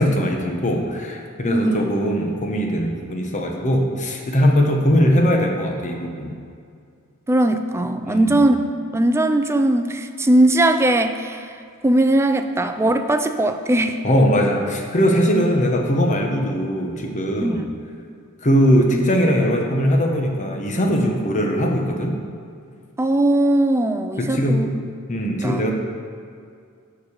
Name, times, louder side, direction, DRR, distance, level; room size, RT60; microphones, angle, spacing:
voice 1, 0.0-6.3 8.0-8.4 14.0-17.7 18.4-22.1 24.2-24.6 25.1-25.7, equal, 35° left, 1 dB, 1.0 m, -20 dB
voice 2, 1.4-1.9 7.3-8.6 8.9-11.5 11.8-14.0 17.4-17.7 23.0-24.7 25.1-25.6, right 1 dB, 10° right, 7 dB, 0.4 m, -19 dB
7.2 x 5.1 x 6.5 m, 2.3 s
head